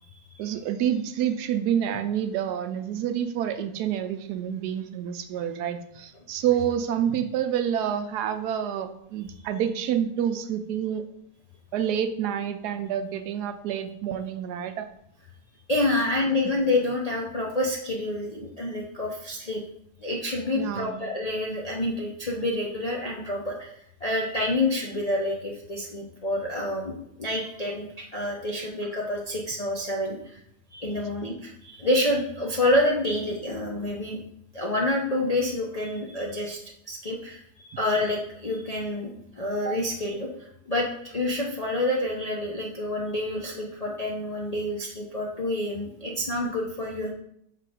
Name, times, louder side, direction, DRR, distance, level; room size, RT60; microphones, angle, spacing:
voice 1, 0.4-11.1 11.7-14.9 20.5-21.0, right 9 dB, 80° right, 9 dB, 1.1 m, -28 dB
voice 2, 15.7-19.6 20.0-30.4 30.7-34.2 34.5-36.6 36.9-39.1 39.4-47.1, left 1 dB, 45° left, -2 dB, 0.5 m, -28 dB
5.9 x 3.8 x 4.9 m, 0.73 s
omnidirectional pair, 1.7 m